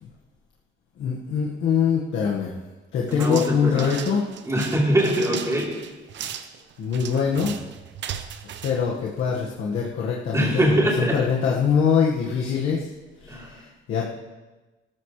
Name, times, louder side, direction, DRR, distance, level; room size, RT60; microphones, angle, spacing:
voice 1, 1.0-2.5 2.9-4.2 6.8-7.5 8.6-10.5 11.0-12.9 13.2-13.6 13.9-14.1, left 6 dB, 70° left, -4 dB, 1.8 m, -23 dB
voice 2, 3.1-4.0 4.4-5.8 10.3-11.2 13.3-13.5, right 1 dB, 15° right, -3 dB, 3.8 m, -23 dB
sound 1, 3.1-9.7, right 9 dB, 65° right, 0.9 m, -37 dB
18.5 x 14.0 x 3.3 m, 1.2 s
cardioid pair, 140°, 20 cm